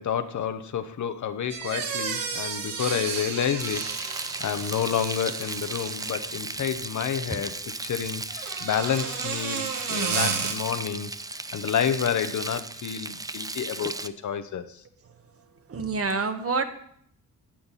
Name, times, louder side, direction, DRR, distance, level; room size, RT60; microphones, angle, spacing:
voice 1, 0.0-14.8, left 8 dB, 55° left, 10 dB, 1.0 m, -29 dB
sound 1, 1.5-6.3 8.3-10.5, right 6 dB, 65° right, 1.9 m, -32 dB
Frying (food), 3.6-14.1, right 2 dB, 10° right, 0.5 m, -35 dB
voice 2, 15.7-16.6, right 4 dB, 40° right, 7 dB, 1.4 m, -27 dB
15.0 x 8.7 x 4.2 m, 0.64 s
cardioid pair, 95°, 36 cm